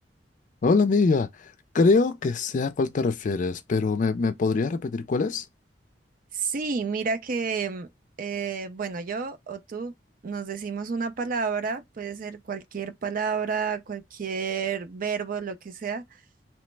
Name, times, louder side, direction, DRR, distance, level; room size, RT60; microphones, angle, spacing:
voice 1, 0.6-1.3 1.7-5.4, left 4 dB, 45° left, 0.4 m, -23 dB
voice 2, 6.3-7.9 8.2-9.9 10.2-16.2, right 5 dB, 50° right, 0.5 m, -30 dB
3.0 x 2.0 x 3.2 m
head